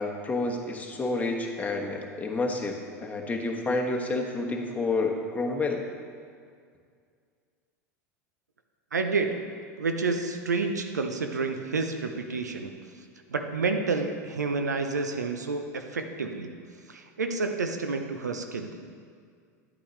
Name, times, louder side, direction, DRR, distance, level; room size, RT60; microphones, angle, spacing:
voice 1, 0.0-5.8, left 3 dB, 15° left, 1 dB, 1.2 m, -29 dB
voice 2, 8.9-9.3 9.8-12.7 13.3-16.5 16.9-18.8, right 4 dB, 90° right, 6 dB, 0.6 m, -29 dB
10.0 x 8.5 x 3.2 m, 2.1 s
hypercardioid pair, 80°, 9 cm